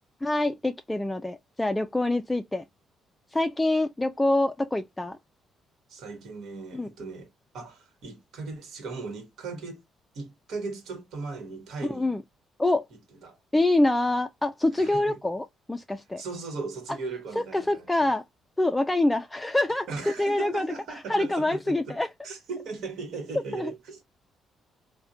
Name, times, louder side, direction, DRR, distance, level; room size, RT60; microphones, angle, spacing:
voice 1, 0.2-2.6 3.3-5.2 6.7-6.9 11.9-12.2 12.6-12.9 13.5-16.2 17.4-18.2 18.6-22.1 23.5-23.7, left 2 dB, 10° left, 0.3 m, -26 dB
voice 2, 5.9-7.3 7.5-9.8 10.1-12.1 13.2-13.4 14.8-15.2 16.2-18.0 19.9-22.0 22.2-24.0, right 4 dB, 70° right, 1.1 m, -37 dB
3.5 x 2.1 x 2.6 m
supercardioid pair, 75°, 0 cm